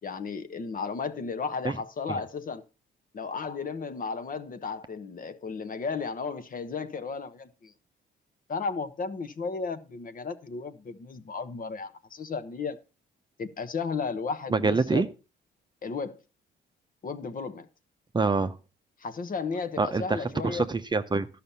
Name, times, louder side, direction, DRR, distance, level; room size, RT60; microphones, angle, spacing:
voice 1, 0.0-2.6 3.1-7.7 8.5-12.8 13.4-15.0 15.8-16.2 17.0-17.7 19.0-20.7, left 5 dB, 45° left, 1.1 m, -34 dB
voice 2, 14.5-15.1 18.1-18.6 19.8-21.3, right 3 dB, 20° right, 0.7 m, -26 dB
11.5 x 5.9 x 5.6 m
cardioid pair, 90°, 20 cm